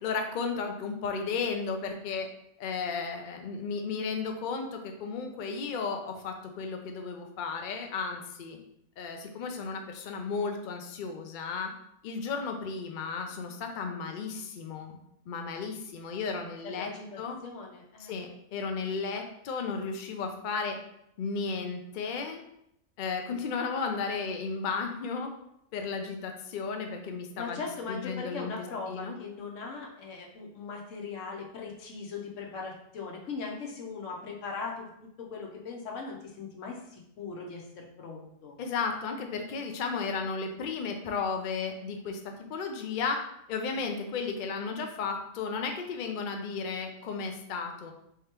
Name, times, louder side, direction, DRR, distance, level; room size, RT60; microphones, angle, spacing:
voice 1, 0.0-2.3 2.6-8.6 9.0-11.7 12.0-15.0 15.3-16.9 17.2-17.4 18.0-20.8 21.2-22.4 23.0-25.3 25.7-28.5 28.9-29.2 38.6-42.2 42.5-43.2 43.5-47.9, left 5 dB, 60° left, 4 dB, 0.5 m, -34 dB
voice 2, 16.7-18.1 27.4-34.9 35.2-38.5, left 4 dB, 75° left, 0 dB, 1.1 m, -39 dB
3.6 x 3.4 x 2.9 m, 0.75 s
omnidirectional pair, 1.3 m